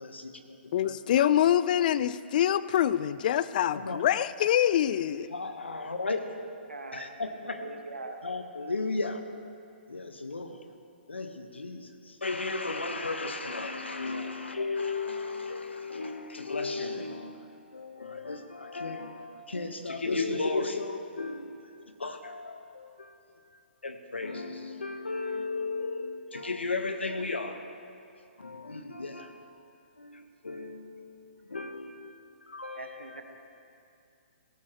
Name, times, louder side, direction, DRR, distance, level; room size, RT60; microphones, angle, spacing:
voice 1, 0.0-0.6 0.8-1.0 3.7-4.0 5.3-6.2 6.9-7.6 8.2-9.2 9.9-10.6 11.1-17.4 17.7-23.1 23.8-27.6 28.4-29.5 30.0-32.1 32.4-33.1, left 3 dB, 85° left, 7 dB, 1.2 m, -35 dB
voice 2, 0.7-5.3, left 11 dB, 45° left, 16 dB, 0.4 m, -25 dB
voice 3, 6.7-7.1 7.4-8.2 14.1-14.3 32.7-33.2, right 2 dB, 85° right, 3 dB, 1.4 m, -42 dB
17.5 x 13.0 x 3.0 m, 2.5 s
figure-of-eight pair, 130°, 6 cm